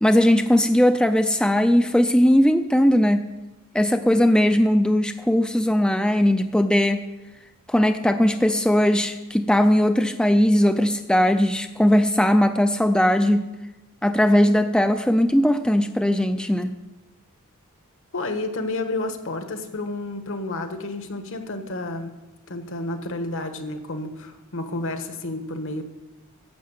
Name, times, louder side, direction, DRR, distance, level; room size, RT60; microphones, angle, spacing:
voice 1, 0.0-3.2 3.7-7.0 7.7-13.5 14.0-16.8, equal, 5° left, 8 dB, 0.4 m, -19 dB
voice 2, 18.1-22.1 22.5-25.8, left 2 dB, 60° left, 7 dB, 1.3 m, -30 dB
11.0 x 7.4 x 7.8 m, 1.0 s
head